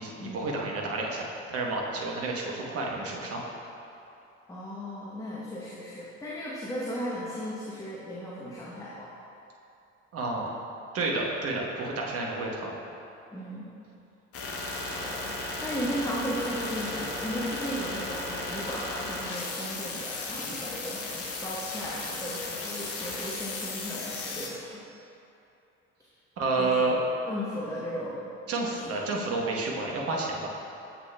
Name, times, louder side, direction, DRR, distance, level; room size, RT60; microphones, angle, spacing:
voice 1, 0.0-3.4 10.1-10.5 10.9-12.7 26.4-27.0 28.5-30.5, right 3 dB, 40° right, -2 dB, 1.1 m, -30 dB
voice 2, 4.5-9.1 13.3-13.7 14.9-15.3 15.6-24.8 26.6-26.8 27.3-28.3 28.7-29.2, equal, 10° left, -7 dB, 0.8 m, -36 dB
sound 1, 14.3-24.5, left 2 dB, 40° left, 0.9 m, -35 dB
7.4 x 6.7 x 2.2 m, 2.7 s
figure-of-eight pair, 55°, 38 cm